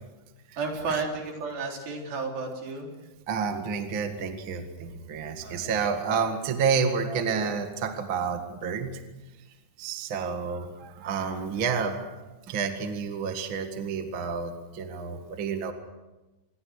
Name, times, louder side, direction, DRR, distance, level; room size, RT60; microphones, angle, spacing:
voice 1, 0.6-2.9 5.4-6.4 7.1-7.3, right 4 dB, 70° right, 1 dB, 5.5 m, -33 dB
voice 2, 3.3-9.0 9.8-12.2 12.5-15.7, right 5 dB, 40° right, 6 dB, 2.0 m, -29 dB
27.0 x 22.0 x 6.5 m, 1.1 s
omnidirectional pair, 4.5 m